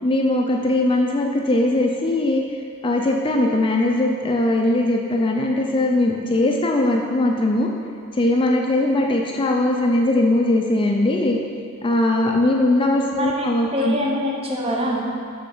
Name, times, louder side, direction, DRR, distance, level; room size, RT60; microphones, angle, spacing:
voice 1, 0.0-2.4 2.8-7.7 8.1-11.4 11.8-14.0, left 1 dB, 25° left, 1 dB, 0.4 m, -20 dB
voice 2, 13.7-15.0, equal, 25° right, -2 dB, 0.8 m, -24 dB
5.3 x 4.6 x 5.5 m, 2.3 s
head